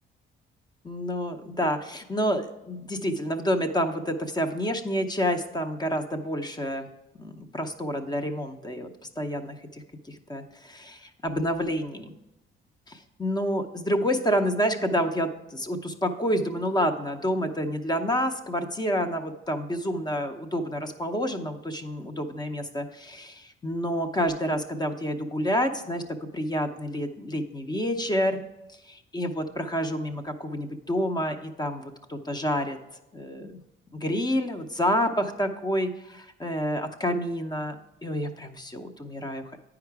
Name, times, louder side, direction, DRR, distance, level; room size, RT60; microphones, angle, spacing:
voice 1, 0.8-6.9 7.2-8.9 9.2-12.1 12.9-26.0 26.3-28.4 28.9-32.8 33.1-33.6 33.9-39.6, equal, 20° left, 7 dB, 0.7 m, -28 dB
9.0 x 4.8 x 4.7 m, 0.94 s
cardioid pair, 90°, 20 cm